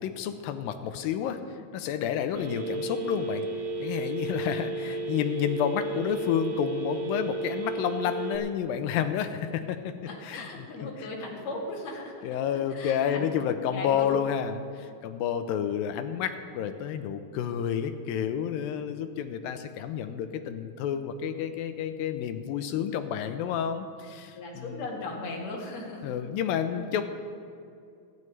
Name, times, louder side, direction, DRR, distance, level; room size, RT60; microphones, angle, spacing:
voice 1, 0.0-1.4 1.7-3.4 3.8-10.0 10.2-11.1 12.2-24.8 26.0-27.0, left 8 dB, 80° left, 9 dB, 2.3 m, -30 dB
Telephone, 2.4-8.4, right 2 dB, 55° right, 1.3 m, -33 dB
voice 2, 10.1-12.4 12.7-13.3 13.7-14.2 24.3-26.1, left 2 dB, 50° left, -3 dB, 3.3 m, -38 dB
27.5 x 10.5 x 3.3 m, 2.5 s
omnidirectional pair, 4.3 m